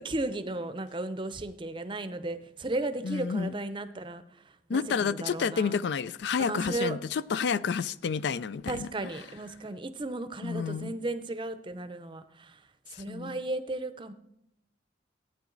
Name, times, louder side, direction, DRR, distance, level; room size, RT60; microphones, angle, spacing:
voice 1, 0.0-4.2 4.7-5.8 6.4-7.0 8.7-12.6 12.9-14.1, right 2 dB, 25° right, 0.6 m, -35 dB
voice 2, 3.0-3.6 4.7-8.9 10.4-11.0 12.9-13.4, left 6 dB, 70° left, 0.4 m, -30 dB
14.5 x 9.0 x 3.9 m
head